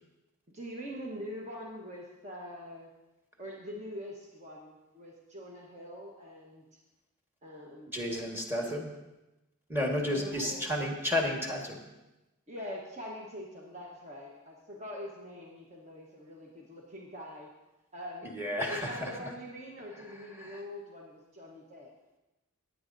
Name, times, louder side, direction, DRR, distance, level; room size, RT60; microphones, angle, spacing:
voice 1, 0.5-2.9 3.4-6.8 7.4-8.0 8.6-8.7 10.0-10.6 12.5-17.5 17.9-18.3 18.7-21.9, equal, 30° right, -2 dB, 1.2 m, -44 dB
voice 2, 7.9-8.9 9.7-11.9 18.2-19.3 20.0-20.6, left 1 dB, 10° right, 0 dB, 1.5 m, -32 dB
17.5 x 9.3 x 2.7 m, 1.0 s
head